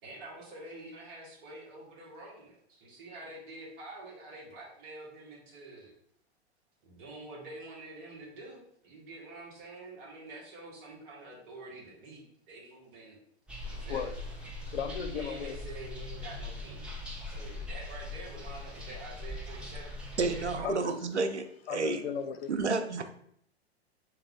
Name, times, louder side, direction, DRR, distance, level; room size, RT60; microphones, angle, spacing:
voice 1, 0.0-5.9 6.8-13.2 13.7-14.1 15.1-17.0 17.2-19.9 20.3-21.0, right 2 dB, 50° right, 1.7 m, -47 dB
sound 1, 13.5-20.6, left 2 dB, 5° right, 0.3 m, -41 dB
voice 2, 13.6-14.1 14.6-15.6 20.6-21.0 21.7-22.5, left 6 dB, 65° left, 0.6 m, -36 dB
voice 3, 20.2-21.4 21.7-22.0 22.5-23.1, right 3 dB, 90° right, 0.5 m, -30 dB
3.5 x 3.3 x 3.6 m
figure-of-eight pair, 100°, 33 cm